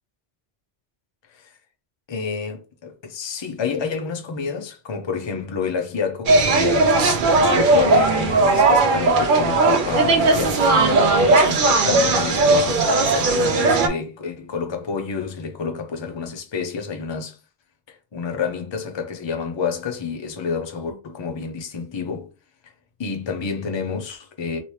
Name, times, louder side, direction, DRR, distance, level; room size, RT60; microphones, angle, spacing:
voice 1, 2.1-7.0 7.2-17.4 17.9-22.3 23.0-24.6, left 5 dB, 40° left, 0.4 m, -29 dB
sound 1, 6.3-13.9, right 3 dB, 55° right, 0.7 m, -17 dB
3.0 x 2.9 x 3.2 m
omnidirectional pair, 1.2 m